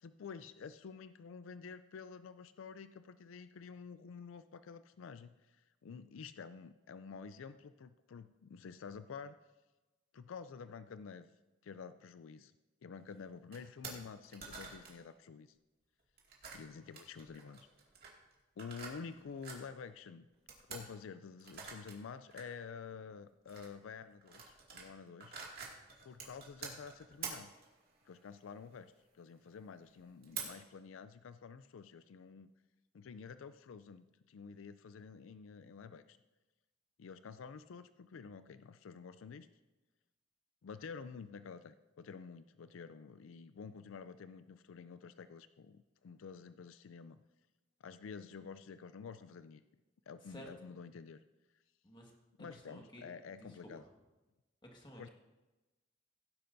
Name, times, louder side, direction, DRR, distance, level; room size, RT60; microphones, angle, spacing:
voice 1, 0.0-9.4 10.1-11.3 11.6-12.5 12.8-15.5 16.5-17.7 18.6-20.3 20.7-25.3 26.0-27.5 28.0-32.5 32.9-36.2 37.0-39.5 40.6-47.2 47.8-49.6 50.1-51.2 52.4-53.8 55.0-55.1, left 5 dB, 90° left, 12 dB, 0.4 m, -49 dB
sound 1, 13.0-13.2 13.5-13.6 13.8-14.0 14.2-15.0 16.2-19.7 20.5-20.8 21.4-21.9 22.3-22.4 23.5-23.7 24.1-24.9 25.2-28.9 29.5-29.6 29.9-30.5, right 5 dB, 50° right, 2.2 m, -47 dB
voice 2, 52.5-53.0 54.7-55.1, equal, 25° left, 0 dB, 1.7 m, -53 dB
17.0 x 10.0 x 2.7 m, 1.1 s
head